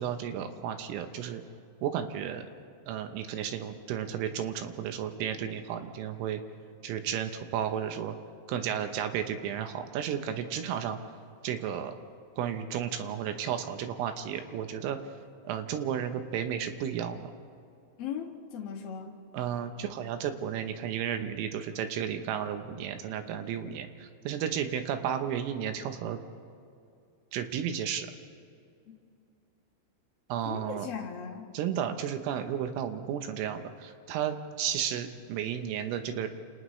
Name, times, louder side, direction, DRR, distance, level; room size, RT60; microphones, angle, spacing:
voice 1, 0.0-1.4 1.8-2.5 2.9-6.4 6.8-8.2 8.5-11.0 11.4-11.9 12.4-15.0 15.4-17.3 19.3-26.2 27.3-28.1 30.3-30.9 31.5-36.3, right 9 dB, 80° right, 7 dB, 3.5 m, -33 dB
voice 2, 18.0-19.1 30.4-31.5, left 7 dB, 60° left, -3 dB, 1.5 m, -38 dB
29.5 x 28.5 x 3.2 m, 2.5 s
omnidirectional pair, 5.9 m